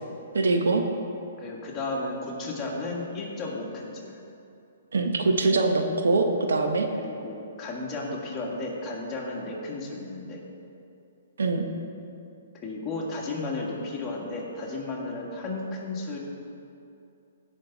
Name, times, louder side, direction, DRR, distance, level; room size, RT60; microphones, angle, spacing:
voice 1, 0.3-0.8 4.9-6.9 11.4-11.6, right 3 dB, 85° right, 4 dB, 1.1 m, -23 dB
voice 2, 1.4-4.1 7.0-10.4 12.6-16.2, left 2 dB, 20° left, -3 dB, 1.8 m, -33 dB
15.5 x 5.7 x 4.0 m, 2.6 s
hypercardioid pair, 145°, 0 cm